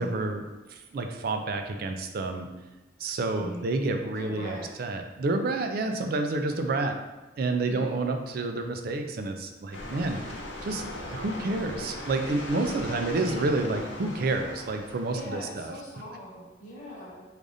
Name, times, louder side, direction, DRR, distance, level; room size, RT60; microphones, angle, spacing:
voice 1, 0.0-2.5 3.0-7.0 7.4-10.2 10.6-10.8 11.1-15.7, right 2 dB, 55° right, 5 dB, 0.4 m, -29 dB
voice 2, 4.1-4.7 6.7-6.8 7.7-8.0 12.6-13.5 15.1-17.2, equal, 45° left, -6 dB, 1.2 m, -41 dB
sound 1, 9.7-15.3, left 1 dB, 85° left, 0.6 m, -39 dB
4.8 x 2.5 x 2.6 m, 1.1 s
head